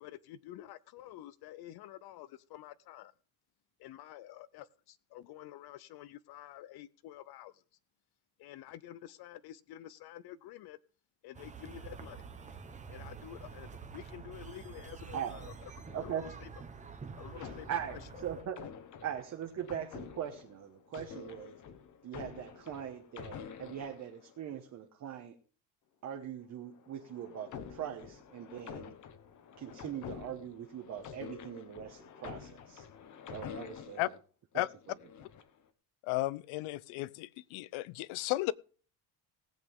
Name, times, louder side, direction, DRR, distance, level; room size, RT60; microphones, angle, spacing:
voice 1, 0.0-3.1 3.8-7.5 8.4-10.8 11.2-12.2 12.9-15.5 17.2-17.7, left 13 dB, 55° left, 0.6 m, -49 dB
sound 1, 11.3-18.4, right 5 dB, 15° right, 0.9 m, -48 dB
sound 2, 15.9-16.8 17.4-24.6 26.6-34.2 34.8-35.6, left 7 dB, 40° left, 1.1 m, -48 dB
voice 2, 15.9-16.3 17.3-18.7 19.0-21.6 22.0-25.4 26.0-28.9 29.6-32.8 33.3-34.2 34.5-34.7, right 9 dB, 35° right, 1.2 m, -41 dB
voice 3, 36.0-38.5, left 18 dB, 85° left, 0.7 m, -34 dB
18.5 x 8.4 x 3.6 m
cardioid pair, 180°, 47 cm